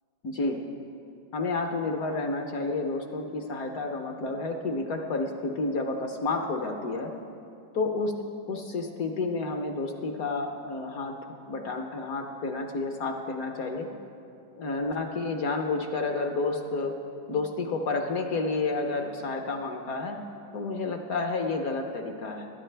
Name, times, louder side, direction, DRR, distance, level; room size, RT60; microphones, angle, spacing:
voice 1, 0.2-0.6 1.3-7.1 7.7-8.1 8.5-11.2 11.5-13.9 14.5-16.9 17.3-20.2 20.5-22.5, left 3 dB, 60° left, 4 dB, 1.0 m, -30 dB
20.5 x 10.5 x 3.3 m, 2.6 s
omnidirectional pair, 2.1 m